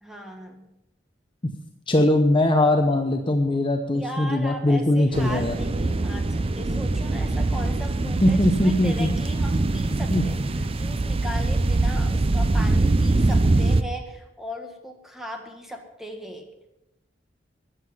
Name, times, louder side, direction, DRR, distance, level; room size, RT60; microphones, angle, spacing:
voice 1, 0.0-0.7 3.9-16.5, equal, ahead, 3 dB, 1.7 m, -37 dB
voice 2, 1.9-5.5 8.2-9.1 10.1-10.2, left 1 dB, 30° left, 4 dB, 0.8 m, -20 dB
sound 1, 5.1-13.8, right 2 dB, 30° right, 0.5 m, -23 dB
13.5 x 9.4 x 5.6 m, 0.89 s
head